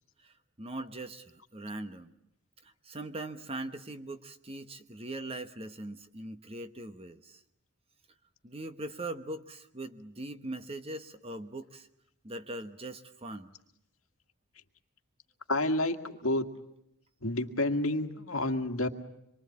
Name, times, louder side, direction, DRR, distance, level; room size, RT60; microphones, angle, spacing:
voice 1, 0.2-2.1 2.6-7.4 8.4-11.9 12.2-13.5, right 2 dB, 25° right, 10 dB, 1.1 m, -41 dB
voice 2, 15.5-16.5 17.2-18.9, left 2 dB, 65° left, 6 dB, 1.9 m, -29 dB
26.0 x 23.0 x 8.6 m, 0.81 s
head